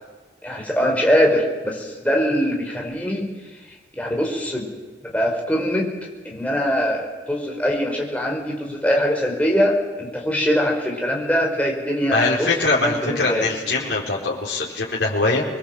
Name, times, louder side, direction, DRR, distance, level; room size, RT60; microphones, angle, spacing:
voice 1, 0.4-3.3 4.0-4.6 5.0-5.9 6.2-12.5 12.7-13.5, equal, 10° left, -1 dB, 5.0 m, -22 dB
voice 2, 12.1-15.4, left 3 dB, 70° left, -4 dB, 4.3 m, -22 dB
25.5 x 22.0 x 7.8 m, 1.4 s
head